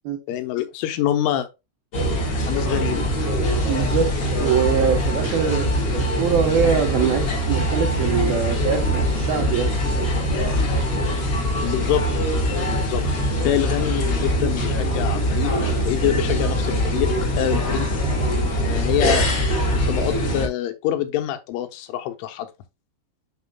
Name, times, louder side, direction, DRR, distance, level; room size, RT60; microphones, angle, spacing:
voice 1, 0.3-1.5 2.5-3.0 11.6-12.0 12.3-12.4 12.7-17.9 18.6-19.3 19.9-22.5, left 12 dB, 80° left, 3.3 m, -25 dB
sound 1, 1.9-20.5, equal, 50° left, 1.8 m, -22 dB
voice 2, 3.6-4.1 4.4-5.7 5.9-9.7, right 7 dB, 75° right, 2.3 m, -23 dB
9.0 x 5.6 x 2.2 m
omnidirectional pair, 5.6 m